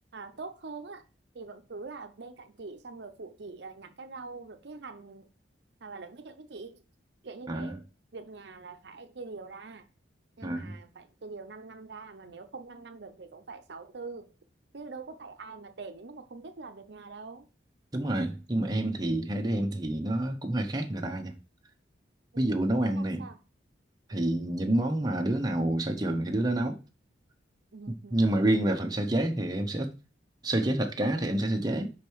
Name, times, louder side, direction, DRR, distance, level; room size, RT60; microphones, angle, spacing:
voice 1, 0.1-1.0 1.3-5.3 5.8-6.8 7.2-7.8 8.1-9.8 10.4-14.3 14.7-17.5 22.3-22.5 23.0-23.4 24.1-24.3 27.7-28.2, right 4 dB, 60° right, 0.7 m, -44 dB
voice 2, 7.5-7.8 10.4-10.7 17.9-21.3 22.4-23.3 24.1-26.8 27.9-29.9 30.4-31.9, right 1 dB, 20° right, 0.8 m, -28 dB
5.4 x 5.1 x 4.6 m
head